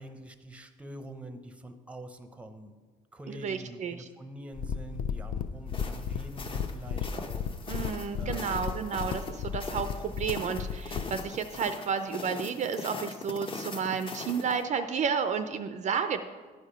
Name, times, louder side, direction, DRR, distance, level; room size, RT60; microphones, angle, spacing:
voice 1, 0.0-2.7 3.1-7.5 8.2-8.5, right 1 dB, 5° right, 8 dB, 0.7 m, -45 dB
voice 2, 3.3-4.1 7.7-16.2, right 6 dB, 45° right, 9 dB, 0.5 m, -32 dB
sound 1, 4.5-11.2, left 7 dB, 55° left, 0.5 m, -34 dB
sound 2, 5.7-14.6, left 3 dB, 30° left, 0.8 m, -41 dB
11.0 x 5.0 x 5.6 m, 1.4 s
cardioid pair, 110°, 17 cm